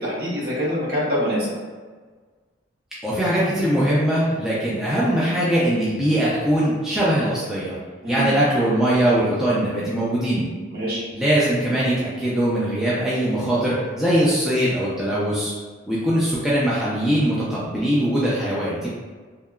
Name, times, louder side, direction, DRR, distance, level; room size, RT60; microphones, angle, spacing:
voice 1, 0.0-1.5 8.0-8.2 10.7-11.0, equal, 50° right, -6 dB, 0.8 m, -25 dB
voice 2, 3.0-7.7 8.1-10.4 11.1-15.5 15.9-18.9, right 1 dB, 5° right, -9 dB, 0.4 m, -21 dB
2.8 x 2.3 x 2.2 m, 1.4 s
head